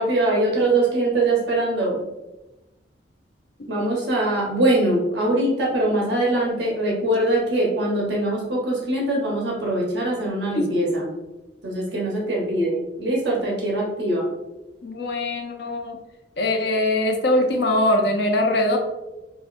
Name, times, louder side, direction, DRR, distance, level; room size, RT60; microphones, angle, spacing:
voice 1, 0.0-2.0 3.7-11.1 11.6-14.2, right 1 dB, 70° right, -3 dB, 0.9 m, -22 dB
voice 2, 14.8-16.0 16.4-18.8, left 1 dB, 65° left, 3 dB, 0.6 m, -22 dB
4.9 x 2.6 x 2.5 m, 1.0 s
head